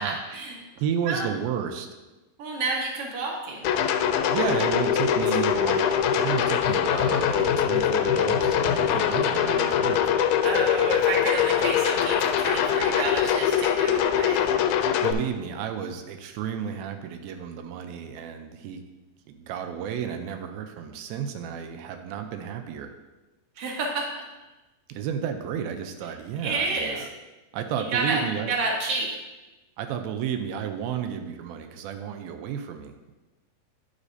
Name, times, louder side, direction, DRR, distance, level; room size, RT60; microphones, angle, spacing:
voice 1, 0.0-0.5 1.0-1.2 2.4-3.7 5.3-5.4 5.7-5.8 10.4-14.5 23.6-24.2 26.4-27.1 27.9-29.1, right 3 dB, 60° right, -1 dB, 1.6 m, -29 dB
voice 2, 0.7-1.9 4.3-5.8 6.1-10.0 14.9-18.8 19.3-22.9 24.9-27.1 27.5-28.6 29.8-32.9, right 8 dB, 85° right, 6 dB, 2.4 m, -32 dB
sound 1, 3.6-15.1, left 8 dB, 85° left, 2.3 m, -23 dB
9.8 x 7.2 x 2.7 m, 1.1 s
omnidirectional pair, 4.3 m